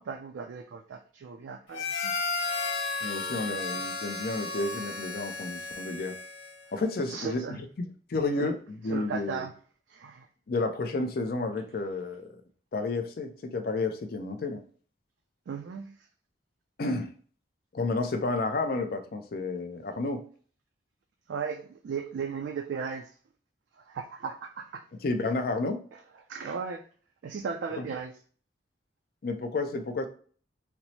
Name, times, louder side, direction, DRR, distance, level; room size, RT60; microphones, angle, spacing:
voice 1, 0.0-2.1 3.3-3.7 7.1-7.6 8.4-8.5 8.9-9.5 9.9-10.3 15.5-16.0 21.3-23.1 23.8-24.8 25.2-25.3 25.9-26.0 26.3-26.9 27.2-28.2, right 6 dB, 70° right, 0.3 m, -36 dB
Harmonica, 1.7-6.7, left 3 dB, 85° left, 0.9 m, -34 dB
voice 2, 3.0-6.1 6.7-7.7 8.1-9.4 10.5-12.3 12.7-14.6 16.8-17.1 17.7-20.2 25.0-25.8 27.8-27.9 29.2-30.1, left 3 dB, 50° left, 0.4 m, -31 dB
4.4 x 2.0 x 2.7 m
head